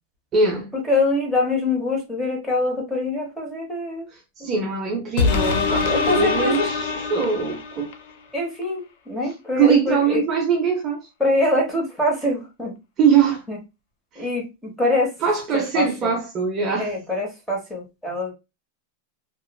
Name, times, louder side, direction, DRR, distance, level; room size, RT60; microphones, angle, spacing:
voice 1, 0.3-0.7 4.1-7.9 9.6-11.1 13.0-13.4 14.1-14.3 15.2-16.9, right 6 dB, 25° right, 0.5 m, -22 dB
voice 2, 0.9-4.1 5.8-6.7 8.3-10.2 11.2-12.7 13.5-13.6 14.1-15.1 15.5-16.2 16.8-18.3, left 2 dB, 5° left, 0.9 m, -24 dB
sound 1, 5.2-8.1 8.6-8.7, left 5 dB, 55° left, 0.5 m, -23 dB
2.9 x 2.3 x 2.3 m
supercardioid pair, 170°, 0 cm